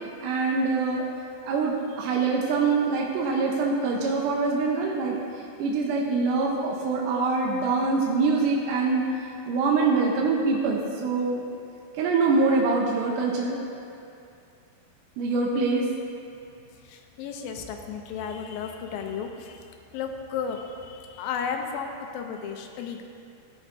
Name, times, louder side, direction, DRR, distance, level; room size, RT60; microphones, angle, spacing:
voice 1, 0.2-1.1 1.4-5.2 5.6-11.5 12.0-13.6 15.2-15.9, right 4 dB, 75° right, -2 dB, 2.1 m, -24 dB
voice 2, 16.8-23.0, left 6 dB, 80° left, 4 dB, 2.4 m, -34 dB
16.0 x 6.3 x 2.6 m, 2.5 s
omnidirectional pair, 4.3 m